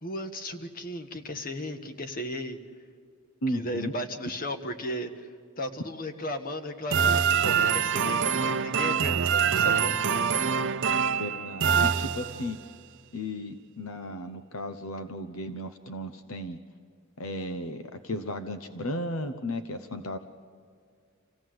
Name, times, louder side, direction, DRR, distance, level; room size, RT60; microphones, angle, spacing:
voice 1, 0.0-2.6 3.5-5.3 5.6-10.1, equal, 40° left, 7 dB, 1.5 m, -35 dB
voice 2, 3.4-3.9 11.2-12.6 13.1-16.6 17.2-20.2, left 1 dB, 70° left, 9 dB, 1.0 m, -35 dB
sound 1, 6.9-12.6, right 7 dB, 60° right, 0.7 m, -25 dB
27.0 x 16.5 x 7.8 m, 2.2 s
head